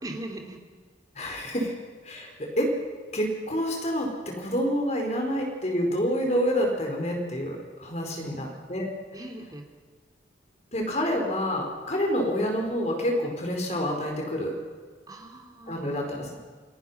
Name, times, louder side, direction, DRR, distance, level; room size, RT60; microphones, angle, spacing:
voice 1, 0.0-0.6 8.4-8.5 9.1-9.7 15.1-16.0, right 1 dB, 20° right, 3 dB, 2.7 m, -40 dB
voice 2, 1.1-1.7 2.0-2.7 3.1-8.9 10.7-14.6 15.7-16.4, equal, 40° left, 1 dB, 4.8 m, -28 dB
28.0 x 18.5 x 5.8 m, 1.5 s
head